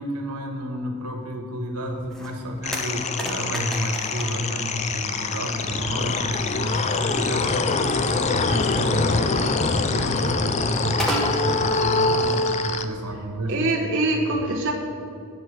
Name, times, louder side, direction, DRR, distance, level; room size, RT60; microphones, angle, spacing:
voice 1, 0.0-13.9 14.2-14.5, equal, 90° right, 3 dB, 1.4 m, -30 dB
sound 1, 1.8-12.9, right 1 dB, ahead, 1.0 m, -37 dB
sound 2, 2.6-12.9, left 3 dB, 30° left, 0.5 m, -24 dB
voice 2, 13.5-14.7, right 2 dB, 55° right, 0 dB, 0.9 m, -23 dB
9.0 x 5.5 x 7.4 m, 2.5 s
head